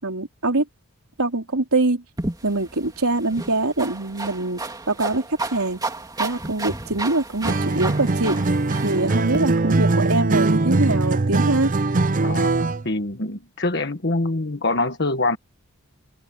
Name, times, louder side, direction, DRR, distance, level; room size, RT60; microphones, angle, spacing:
voice 1, 0.0-0.7 1.2-2.0 2.4-5.8 6.2-8.4 8.8-11.7, right 2 dB, 80° right, 3.6 m, -23 dB
sound 1, 2.2-9.4, right 2 dB, 15° right, 3.0 m, -32 dB
Acoustic guitar, 7.5-12.9, right 3 dB, 35° right, 0.6 m, -21 dB
voice 2, 12.8-15.4, left 2 dB, 50° left, 1.5 m, -24 dB
head